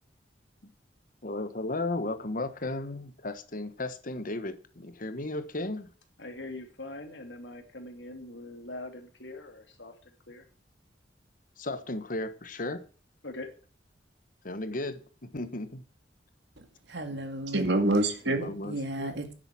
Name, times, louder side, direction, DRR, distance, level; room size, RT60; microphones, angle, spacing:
voice 1, 1.2-5.9 11.6-12.9 14.4-15.8 18.2-19.2, left 2 dB, 50° left, 1.3 m, -35 dB
voice 2, 6.2-10.4 13.2-13.5, left 2 dB, 90° left, 2.8 m, -42 dB
voice 3, 16.9-19.3, right 2 dB, 70° right, 2.2 m, -28 dB
10.5 x 8.0 x 7.4 m
head